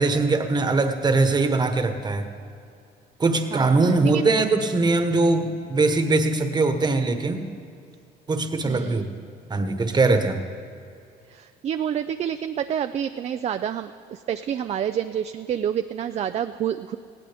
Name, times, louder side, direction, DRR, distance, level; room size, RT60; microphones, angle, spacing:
voice 1, 0.0-2.2 3.2-7.4 8.3-9.1 9.5-10.4, right 3 dB, 25° right, 7 dB, 1.2 m, -21 dB
voice 2, 3.5-4.3 8.6-9.3 11.3-17.0, right 9 dB, 40° right, 9 dB, 0.4 m, -28 dB
19.0 x 16.5 x 3.5 m, 2.4 s
cardioid pair, 110°, 17 cm